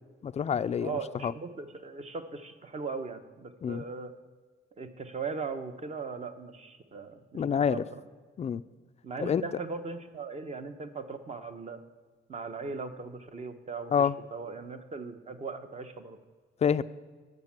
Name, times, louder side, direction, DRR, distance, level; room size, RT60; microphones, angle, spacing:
voice 1, 0.2-1.3 3.6-3.8 7.3-7.8 8.4-8.6 9.2-9.4 13.9-14.1 16.6-16.8, left 7 dB, 35° left, 14 dB, 0.3 m, -27 dB
voice 2, 0.8-4.1 4.8-8.0 9.0-11.8 12.3-16.2, right 4 dB, 35° right, 8 dB, 0.9 m, -39 dB
9.5 x 7.4 x 5.9 m, 1.5 s
cardioid pair, 90°, 20 cm